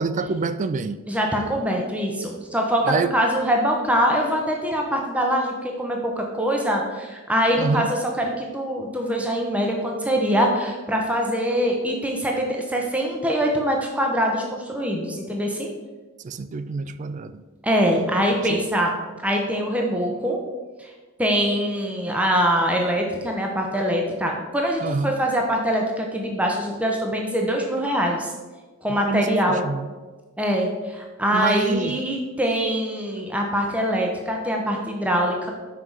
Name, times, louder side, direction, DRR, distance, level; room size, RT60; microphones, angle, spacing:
voice 1, 0.0-1.0 2.8-3.1 7.6-7.9 16.2-17.4 18.4-18.6 24.8-25.1 29.1-29.9 31.3-32.0, right 4 dB, 35° right, 12 dB, 0.3 m, -26 dB
voice 2, 1.1-15.7 17.6-19.0 19.2-20.4 20.8-20.9 21.2-28.3 28.8-29.7 30.4-35.5, equal, 5° right, 0 dB, 0.7 m, -23 dB
5.8 x 4.7 x 5.3 m, 1.3 s
head